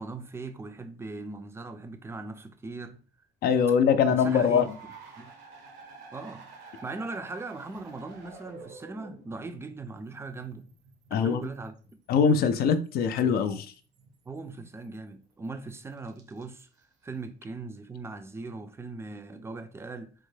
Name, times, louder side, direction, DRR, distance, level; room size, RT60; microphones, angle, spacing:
voice 1, 0.0-3.0 4.1-4.7 5.2-5.3 6.1-10.7 11.1-11.7 14.3-16.7 17.0-20.1, right 3 dB, 15° right, 0.4 m, -39 dB
voice 2, 3.4-4.7 11.1-11.4 12.1-13.7, left 6 dB, 65° left, 0.4 m, -23 dB
sound 1, 4.0-15.1 15.4-16.8, right 4 dB, 85° right, 0.9 m, -50 dB
3.5 x 2.1 x 3.2 m
cardioid pair, 110°, 17 cm